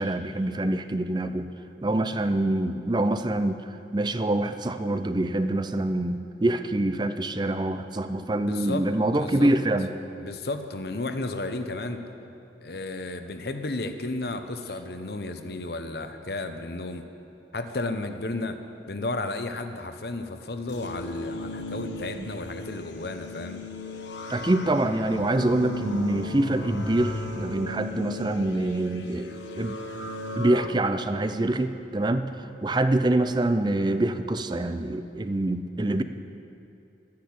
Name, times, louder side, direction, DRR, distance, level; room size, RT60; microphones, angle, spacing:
voice 1, 0.0-1.5 1.8-9.9 22.2-22.3 24.3-29.8 30.4-32.3 32.6-36.0, right 1 dB, 25° right, 10 dB, 0.5 m, -25 dB
voice 2, 8.4-8.9 9.1-9.5 10.2-12.0 12.6-17.1 17.5-18.6 18.9-23.6, left 2 dB, 60° left, 8 dB, 0.9 m, -33 dB
sound 1, 20.7-30.7, left 2 dB, 85° left, 1.2 m, -36 dB
12.5 x 10.5 x 8.5 m, 2.9 s
head